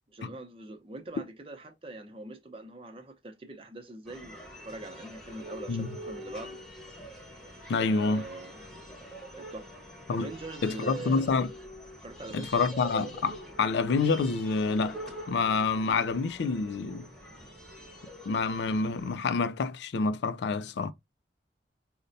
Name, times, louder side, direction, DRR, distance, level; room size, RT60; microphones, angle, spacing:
voice 1, 0.1-6.6 7.8-8.9 9.3-9.7 10.1-11.3 12.0-12.7, right 2 dB, 30° right, 0.7 m, -43 dB
sound 1, 4.1-19.2, equal, 5° left, 1.0 m, -45 dB
voice 2, 7.7-8.2 10.1-10.3 10.6-11.5 12.3-15.0 15.3-17.1 18.3-20.9, left 4 dB, 80° left, 0.4 m, -27 dB
5.2 x 2.1 x 2.6 m
head